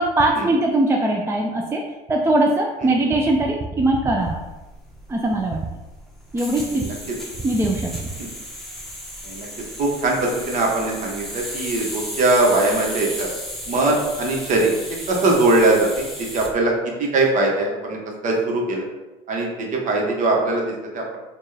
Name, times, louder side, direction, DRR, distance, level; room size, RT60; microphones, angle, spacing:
voice 1, 0.0-1.8 2.1-4.4 5.1-5.7 6.3-6.8 7.4-7.9, right 2 dB, 15° right, 0 dB, 0.4 m, -20 dB
sound 1, 4.2-16.5, equal, ahead, 1.1 m, -34 dB
voice 2, 6.7-7.1 8.2-8.3 9.2-9.5 9.8-13.3 13.7-14.7 15.1-18.0 18.2-18.9 19.3-21.2, right 2 dB, 50° right, -1 dB, 1.1 m, -21 dB
4.2 x 2.4 x 3.3 m, 1.1 s
supercardioid pair, 90°, 17 cm